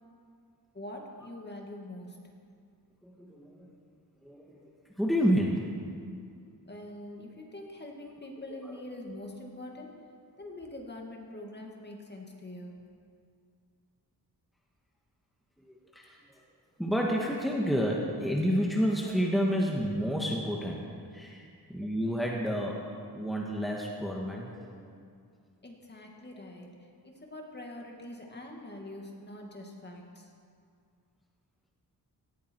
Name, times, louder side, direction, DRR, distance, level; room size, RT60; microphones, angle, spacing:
voice 1, 0.7-2.2 6.7-9.9 10.4-12.8 25.6-26.7 27.0-30.3, left 1 dB, 25° left, 0 dB, 2.2 m, -44 dB
voice 2, 3.0-3.7 4.2-4.6 5.0-5.7 8.5-8.7 15.7-16.2 16.8-20.9 21.1-22.9 23.1-25.0, equal, ahead, -2 dB, 1.6 m, -30 dB
18.0 x 16.5 x 4.7 m, 2.3 s
wide cardioid pair, 130°, 40 cm